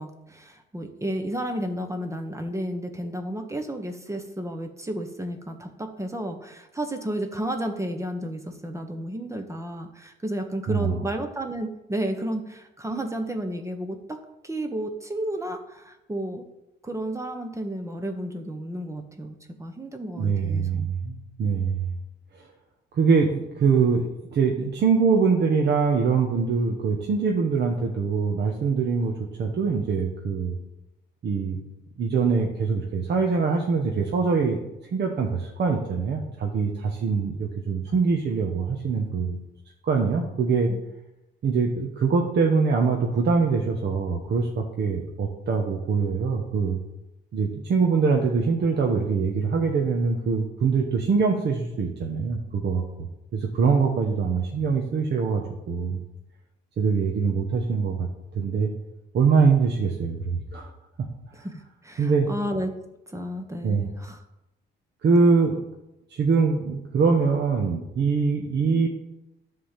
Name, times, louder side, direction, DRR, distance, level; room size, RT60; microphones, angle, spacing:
voice 1, 0.0-14.2 14.4-16.4 16.8-20.9 40.7-40.8 61.3-62.7 63.1-64.2, right 1 dB, 15° right, 5 dB, 1.1 m, -32 dB
voice 2, 20.2-21.9 22.3-22.5 22.9-30.6 31.2-31.6 32.0-39.4 39.8-40.7 41.4-46.8 47.3-52.8 53.3-56.0 56.8-58.1 58.3-58.7 59.1-60.7 62.0-62.3 63.6-63.9 65.0-65.6 66.1-68.9, right 5 dB, 60° right, 1 dB, 1.2 m, -23 dB
10.0 x 3.8 x 7.4 m, 0.91 s
cardioid pair, 90°, 20 cm